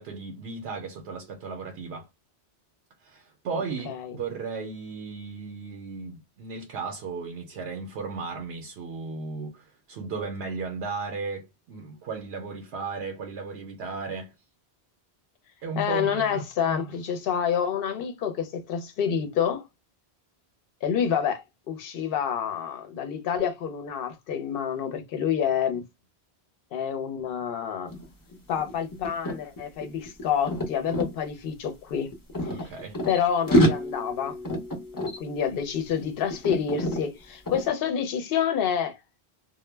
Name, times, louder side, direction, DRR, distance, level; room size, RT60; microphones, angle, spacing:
voice 1, 0.0-2.1 3.0-14.3 15.6-16.4 32.5-33.0, right 4 dB, 75° right, 0.8 m, -35 dB
voice 2, 3.8-4.2 15.8-19.6 20.8-25.8 26.7-27.9 28.5-32.1 33.1-34.4 35.2-39.0, left 8 dB, 65° left, 0.8 m, -28 dB
sound 1, 27.9-28.0 28.3-31.1 31.9-33.2 33.5-36.0 36.3-37.0 37.5-37.7, equal, 25° left, 0.6 m, -27 dB
2.1 x 2.1 x 3.2 m
omnidirectional pair, 1.1 m